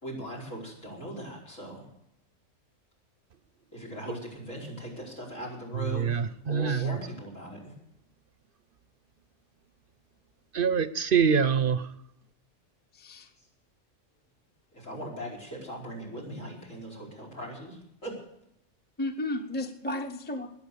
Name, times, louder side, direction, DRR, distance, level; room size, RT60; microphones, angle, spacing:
voice 1, 0.0-1.9 3.7-7.7 14.7-18.2, equal, 80° left, 2 dB, 5.3 m, -39 dB
voice 2, 5.8-7.0 10.5-11.9, right 6 dB, 50° right, 15 dB, 0.8 m, -25 dB
voice 3, 12.9-13.3 19.0-20.5, left 1 dB, 10° left, 5 dB, 1.0 m, -34 dB
20.5 x 9.0 x 6.8 m, 0.82 s
omnidirectional pair, 1.3 m